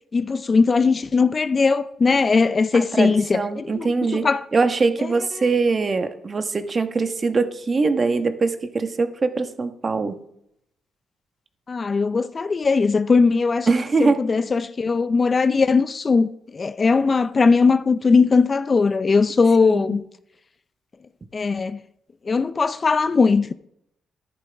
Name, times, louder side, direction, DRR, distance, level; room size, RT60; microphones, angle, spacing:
voice 1, 0.1-4.4 11.7-13.7 14.0-16.3 16.5-20.0 21.3-21.8 22.3-23.5, left 4 dB, 35° left, 0.5 m, -19 dB
voice 2, 2.7-10.2 13.7-14.2 19.7-20.0, right 4 dB, 35° right, 1.2 m, -22 dB
13.5 x 11.0 x 3.5 m
cardioid pair, 90°, 0 cm